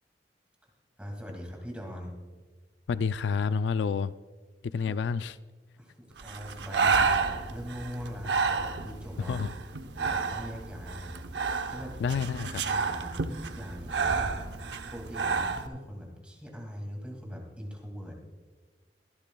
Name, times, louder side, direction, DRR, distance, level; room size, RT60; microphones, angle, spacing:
voice 1, 1.0-2.2 4.8-5.0 5.8-9.4 9.9-12.2 12.6-13.2 13.4-14.5 14.9-18.1, equal, 5° right, 0 dB, 2.2 m, -41 dB
voice 2, 2.9-4.1 4.6-5.3 9.3-9.5 12.0-12.6, left 5 dB, 80° left, 15 dB, 0.3 m, -29 dB
Breathing, 6.2-15.7, right 5 dB, 75° right, 0.7 m, -30 dB
23.0 x 12.0 x 2.3 m, 1.3 s
head